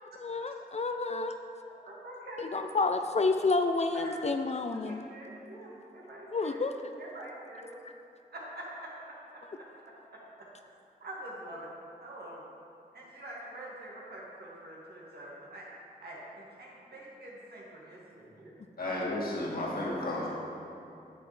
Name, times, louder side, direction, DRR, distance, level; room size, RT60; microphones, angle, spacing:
voice 1, 0.2-1.3 2.4-5.1 6.3-6.7, left 3 dB, 45° left, 7 dB, 0.5 m, -29 dB
voice 2, 1.6-2.5 3.9-4.3 4.8-6.6 7.0-7.7 8.3-8.9 9.3-9.4 10.1-10.2 11.0-11.7 12.0-12.5 12.9-15.6 16.0-18.5 18.8-19.0, right 1 dB, 80° right, -5 dB, 1.9 m, -45 dB
voice 3, 18.8-20.3, left 1 dB, 65° left, -5 dB, 2.0 m, -33 dB
9.5 x 7.7 x 3.3 m, 2.6 s
cardioid pair, 55°, 16 cm